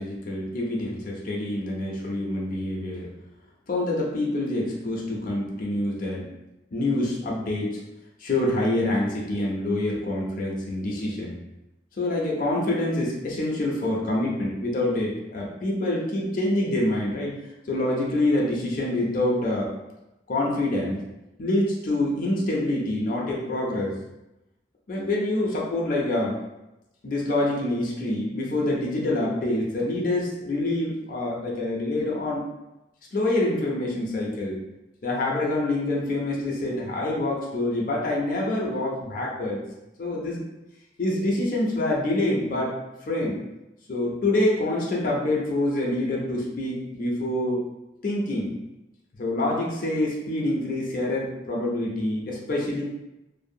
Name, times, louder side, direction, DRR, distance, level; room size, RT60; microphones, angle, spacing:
voice 1, 0.0-3.1 3.7-6.3 6.7-7.8 8.2-11.3 12.0-17.4 17.7-19.7 20.3-21.0 21.4-24.0 24.9-26.3 27.0-32.5 33.1-34.6 35.0-39.6 40.0-40.4 41.0-42.8 43.1-43.4 43.9-47.6 48.0-48.5 49.2-52.8, left 1 dB, 50° left, -3 dB, 0.5 m, -26 dB
2.5 x 2.1 x 2.6 m, 0.96 s
head